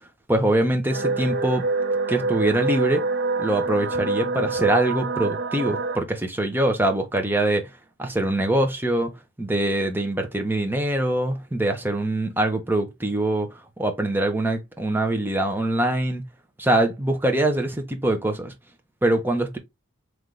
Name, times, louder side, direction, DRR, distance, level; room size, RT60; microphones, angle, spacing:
voice 1, 0.3-1.7 2.1-3.0 3.4-7.7 8.0-9.1 9.4-13.5 13.8-16.2 16.6-18.5 19.0-19.6, right 1 dB, 10° right, 0.7 m, -23 dB
sound 1, 0.9-6.0, right 3 dB, 50° right, 0.6 m, -26 dB
3.8 x 3.2 x 3.2 m
head